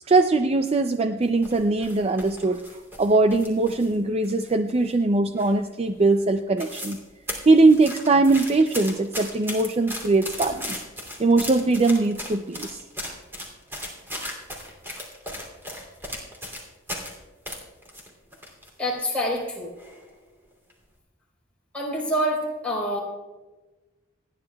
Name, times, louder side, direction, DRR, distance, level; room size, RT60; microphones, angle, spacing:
voice 1, 0.1-2.6 3.0-7.0 7.5-10.8 11.2-12.8, right 3 dB, 30° right, 7 dB, 0.4 m, -21 dB
sound 1, 1.2-3.9 4.2-5.0 5.4-5.7 6.1-6.2 6.4-7.0 7.3-17.1 17.5-18.7 19.0-19.1 19.8-20.1 20.5-20.7, left 1 dB, 10° right, 2.8 m, -36 dB
voice 2, 18.8-19.7 21.7-23.0, equal, 5° left, -5 dB, 4.0 m, -26 dB
29.0 x 11.0 x 2.3 m, 1.2 s
head